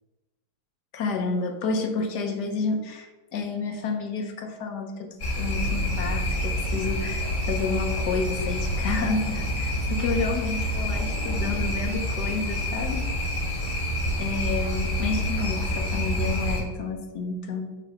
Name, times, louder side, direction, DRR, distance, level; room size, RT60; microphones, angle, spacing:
voice 1, 0.9-5.1 5.4-13.1 14.2-17.7, left 4 dB, 85° left, 5 dB, 1.5 m, -30 dB
sound 1, 5.2-16.6, equal, 35° left, 1.3 m, -27 dB
6.0 x 3.3 x 5.7 m, 1.2 s
omnidirectional pair, 1.7 m